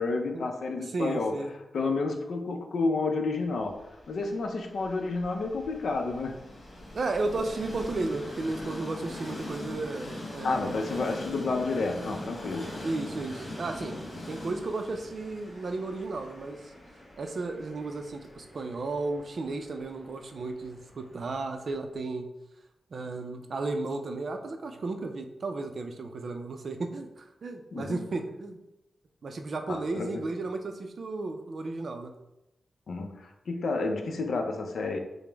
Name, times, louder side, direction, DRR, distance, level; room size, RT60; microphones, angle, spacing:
voice 1, 0.0-1.4 1.7-3.8 4.1-6.4 10.4-12.7 27.7-28.0 29.7-30.2 32.9-35.0, left 3 dB, 70° left, 4 dB, 0.5 m, -30 dB
voice 2, 0.9-1.5 6.9-10.8 12.8-14.0 14.3-16.7 17.2-22.3 22.9-28.6 29.2-32.1, right 3 dB, 50° right, 5 dB, 0.4 m, -34 dB
Train, 3.6-21.7, left 1 dB, 35° left, 1.0 m, -42 dB
4.9 x 2.0 x 3.4 m, 0.91 s
wide cardioid pair, 155°, 0 cm